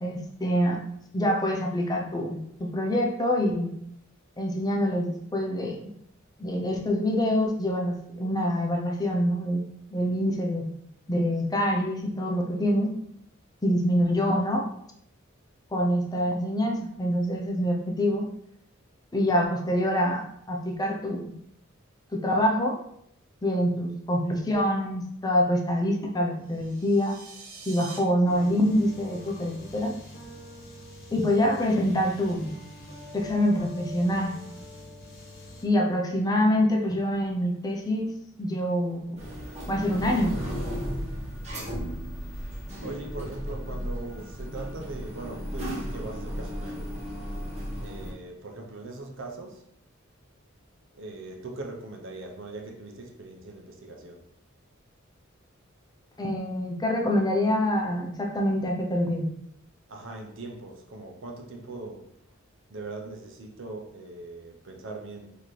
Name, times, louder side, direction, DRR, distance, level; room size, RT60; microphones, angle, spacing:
voice 1, 0.0-0.8 1.1-3.7 4.4-5.8 6.4-9.6 9.9-10.6 11.1-13.0 13.6-14.6 15.7-18.3 19.1-21.3 22.1-22.8 23.4-27.2 27.7-29.9 31.1-32.6 33.1-34.4 35.6-39.0 39.7-40.3 56.2-59.3, equal, 20° left, 0.6 m, -25 dB
sound 1, 26.4-28.0, right 4 dB, 85° right, 1.0 m, -45 dB
sound 2, 28.2-35.6, left 1 dB, 50° left, 1.3 m, -44 dB
sound 3, 39.2-48.1, equal, 35° right, 1.0 m, -35 dB
voice 2, 42.8-47.0 47.8-49.7 50.9-54.3 59.9-62.2 62.7-65.4, right 2 dB, 65° right, 0.7 m, -40 dB
4.2 x 2.9 x 3.1 m
head